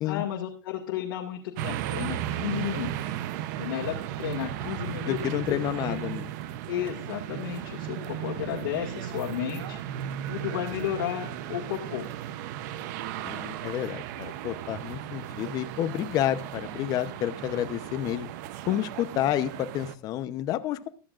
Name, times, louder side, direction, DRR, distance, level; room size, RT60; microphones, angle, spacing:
voice 1, 0.0-3.1 3.6-5.4 5.8-6.0 6.7-9.8 10.3-12.1, left 11 dB, 75° left, -1 dB, 1.9 m, -33 dB
sound 1, 1.6-19.9, right 11 dB, 55° right, 0.7 m, -35 dB
voice 2, 5.0-6.3 13.2-18.3 18.7-20.9, left 12 dB, 35° left, 12 dB, 0.8 m, -30 dB
15.0 x 13.0 x 2.5 m, 0.35 s
supercardioid pair, 160°, 11 cm